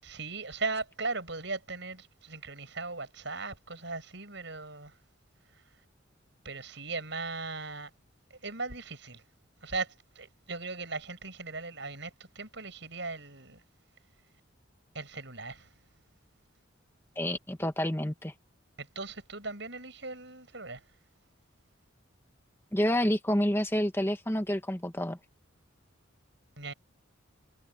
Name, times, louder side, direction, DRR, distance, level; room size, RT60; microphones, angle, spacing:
voice 1, 0.0-4.9 6.4-7.9 8.4-9.2 9.6-12.1 12.4-13.6 14.9-15.7 18.8-20.8 26.6-26.7, right 3 dB, 60° right, 7.1 m, -38 dB
voice 2, 17.2-18.3 22.7-25.2, equal, 10° left, 1.5 m, -28 dB
head